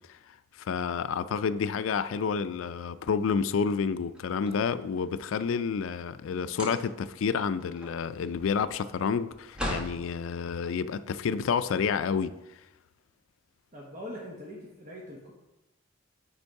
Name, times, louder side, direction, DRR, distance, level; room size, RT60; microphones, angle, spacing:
voice 1, 0.6-12.3, left 6 dB, 80° left, 0.4 m, -29 dB
sound 1, 4.1-5.2 6.4-7.1 7.5-10.0, left 1 dB, 5° right, 1.0 m, -38 dB
voice 2, 13.7-15.3, equal, 40° right, 1.1 m, -42 dB
7.9 x 4.5 x 4.6 m
head